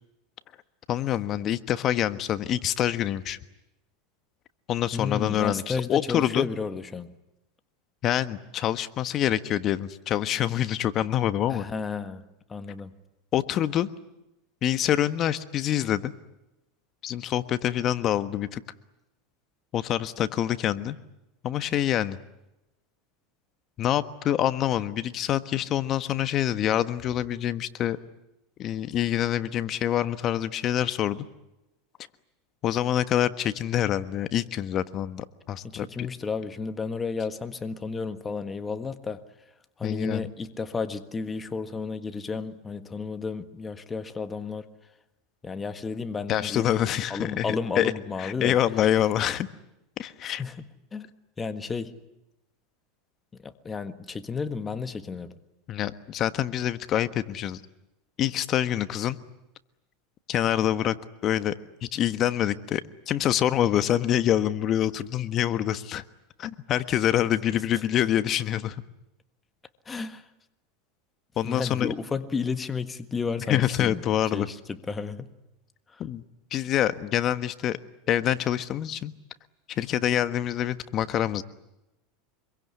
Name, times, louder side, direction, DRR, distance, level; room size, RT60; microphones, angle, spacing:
voice 1, 0.9-3.4 4.7-6.5 8.0-11.7 13.3-13.9 14.6-16.1 17.0-18.6 19.7-21.0 21.4-22.2 23.8-28.0 28.6-31.2 32.6-36.1 39.8-40.3 46.3-47.9 48.2-49.5 50.0-50.4 55.7-57.6 58.2-59.2 60.3-60.9 61.2-61.5 61.8-66.0 66.4-68.7 71.4-71.9 73.5-74.5 76.0-76.2 76.5-77.8 78.1-79.1 79.7-81.4, left 11 dB, 40° left, 1.4 m, -26 dB
voice 2, 4.9-7.1 11.5-13.0 35.6-39.2 39.8-44.7 45.4-46.7 47.1-48.6 50.2-50.6 50.9-51.1 51.4-52.0 53.4-55.4 69.8-70.3 71.4-74.0 74.3-75.3 75.9-76.0, left 4 dB, 20° left, 1.6 m, -32 dB
26.0 x 23.0 x 9.7 m
supercardioid pair, 125°, 0 cm